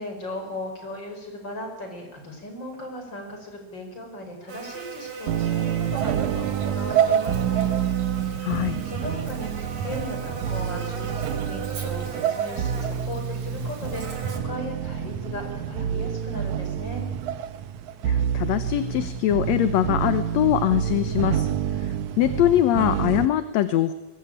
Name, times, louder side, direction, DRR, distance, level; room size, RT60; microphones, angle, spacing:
voice 1, 0.0-7.7 8.8-17.1, left 1 dB, 35° left, 4 dB, 5.7 m, -37 dB
Buzz, 4.5-14.4, right 5 dB, 65° right, 4.4 m, -38 dB
sound 1, 5.3-23.3, right 9 dB, 80° right, 2.5 m, -27 dB
voice 2, 8.4-8.8 18.0-23.9, left 12 dB, 70° left, 11 dB, 2.1 m, -23 dB
22.5 x 20.0 x 9.0 m, 1.1 s
omnidirectional pair, 3.3 m